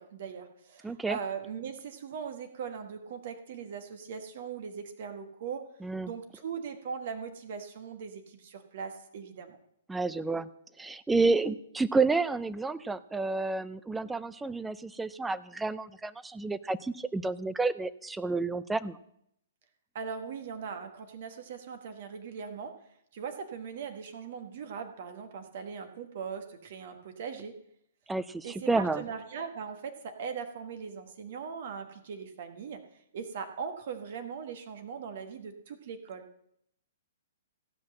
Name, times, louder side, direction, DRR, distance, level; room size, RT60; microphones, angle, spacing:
voice 1, 0.0-5.7 6.0-9.6 19.9-27.6 28.4-32.8 33.1-36.2, right 6 dB, 55° right, 7 dB, 1.3 m, -40 dB
voice 2, 0.8-1.2 5.8-6.1 9.9-10.5 10.8-19.0 28.1-29.0, right 3 dB, 10° right, 16 dB, 0.5 m, -30 dB
15.5 x 5.8 x 7.5 m, 0.75 s
hypercardioid pair, 125°, 0 cm